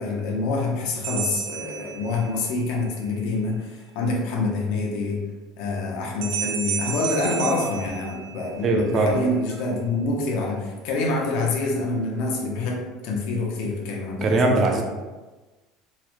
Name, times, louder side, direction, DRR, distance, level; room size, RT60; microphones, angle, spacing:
voice 1, 0.0-5.2 5.6-14.6, left 3 dB, 60° left, 0 dB, 0.7 m, -26 dB
sound 1, 1.0-2.6 6.2-8.7, right 8 dB, 90° right, 0.4 m, -31 dB
voice 2, 8.6-9.2 14.2-14.8, right 3 dB, 25° right, 2 dB, 0.4 m, -20 dB
3.7 x 2.1 x 3.0 m, 1.2 s
cardioid pair, 180°, 0 cm